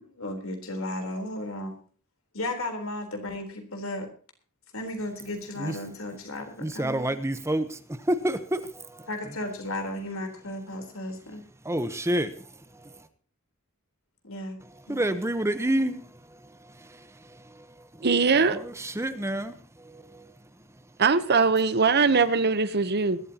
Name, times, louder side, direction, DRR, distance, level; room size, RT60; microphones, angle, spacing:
voice 1, 0.0-1.7 2.3-4.1 4.7-7.2 9.1-11.4 14.2-14.6 14.9-15.1, left 1 dB, 70° left, 3.9 m, -34 dB
voice 2, 6.6-9.1 11.6-12.3 12.8-12.9 14.9-16.1 16.8-17.7 18.5-20.2, right 1 dB, 15° right, 0.9 m, -29 dB
voice 3, 18.0-18.6 21.0-23.2, right 4 dB, 50° right, 0.9 m, -21 dB
21.5 x 12.5 x 2.9 m
head